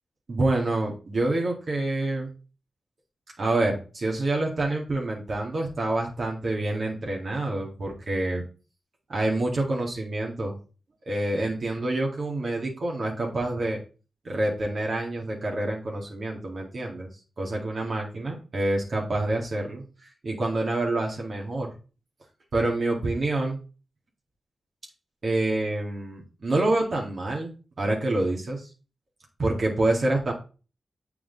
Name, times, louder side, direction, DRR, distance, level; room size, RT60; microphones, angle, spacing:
voice 1, 0.3-2.3 3.4-8.4 9.1-10.6 11.0-13.8 14.2-17.1 17.4-21.7 22.5-23.6 25.2-28.7 29.4-30.3, right 2 dB, 60° right, -1 dB, 2.1 m, -27 dB
7.4 x 4.8 x 4.0 m, 0.34 s
cardioid pair, 45°, 0 cm